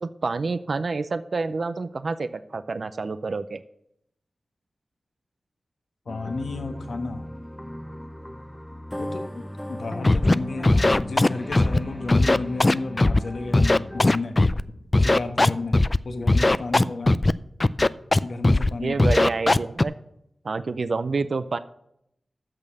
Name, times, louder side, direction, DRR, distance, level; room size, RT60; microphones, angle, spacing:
voice 1, 0.0-3.6 18.8-19.9 20.4-21.6, right 4 dB, 65° right, 13 dB, 0.5 m, -28 dB
voice 2, 6.0-7.2 9.0-9.2 9.7-14.6 15.0-15.8 16.0-17.2 17.8-19.0, left 3 dB, 80° left, 6 dB, 1.2 m, -32 dB
sound 1, 6.1-14.2, equal, 5° left, 0.8 m, -37 dB
Scratching (performance technique), 10.0-10.3 10.6-11.8 12.1-13.2 13.5-14.6 14.9-16.0 16.3-17.3 17.6-18.2 18.4-18.7 19.0-19.8, left 2 dB, 35° left, 0.4 m, -18 dB
8.8 x 6.4 x 6.7 m, 0.76 s
cardioid pair, 45°, 0 cm